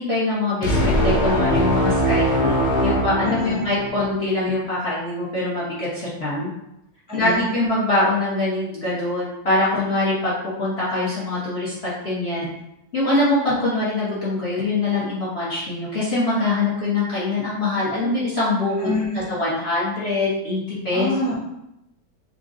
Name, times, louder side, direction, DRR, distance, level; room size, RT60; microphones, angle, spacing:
voice 1, 0.0-2.5 2.8-6.5 7.1-12.5 12.9-21.1, left 2 dB, 40° left, -9 dB, 1.1 m, -23 dB
sound 1, 0.6-4.1, equal, 90° left, 0.6 m, -21 dB
voice 2, 3.2-3.7 7.1-7.5 18.8-19.2 20.9-21.3, left 2 dB, 5° right, -9 dB, 0.6 m, -26 dB
3.9 x 2.3 x 3.6 m, 0.85 s
omnidirectional pair, 2.0 m